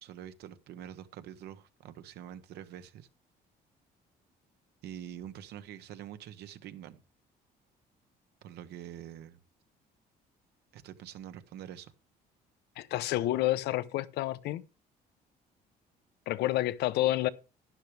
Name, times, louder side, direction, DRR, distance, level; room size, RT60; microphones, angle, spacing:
voice 1, 0.0-3.1 4.8-7.0 8.4-9.4 10.7-11.9, right 10 dB, 75° right, 1.2 m, -45 dB
voice 2, 12.8-14.6 16.3-17.3, left 15 dB, 80° left, 0.8 m, -29 dB
12.0 x 10.5 x 3.4 m
cardioid pair, 110°, 17 cm